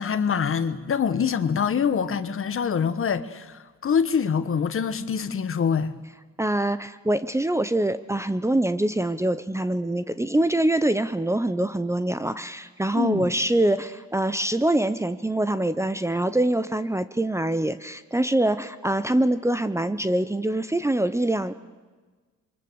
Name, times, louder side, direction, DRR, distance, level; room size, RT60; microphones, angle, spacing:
voice 1, 0.0-5.9 12.9-13.3, left 7 dB, 45° left, 1.4 m, -25 dB
voice 2, 6.4-21.5, right 1 dB, 10° right, 0.9 m, -24 dB
27.0 x 23.5 x 8.0 m
cardioid pair, 90°, 30 cm